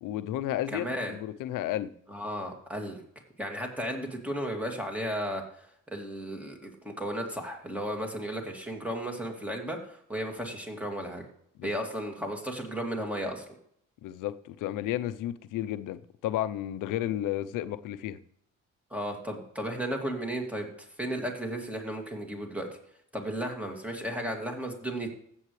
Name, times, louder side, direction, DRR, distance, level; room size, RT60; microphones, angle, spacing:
voice 1, 0.0-1.9 11.6-11.8 14.0-18.2, left 13 dB, 85° left, 0.7 m, -32 dB
voice 2, 0.7-1.2 2.1-3.0 3.4-5.4 5.9-11.2 11.6-13.5 18.9-20.7 21.0-22.7 23.1-25.1, equal, 5° right, 2.4 m, -34 dB
15.5 x 8.0 x 3.3 m
cardioid pair, 120°, 31 cm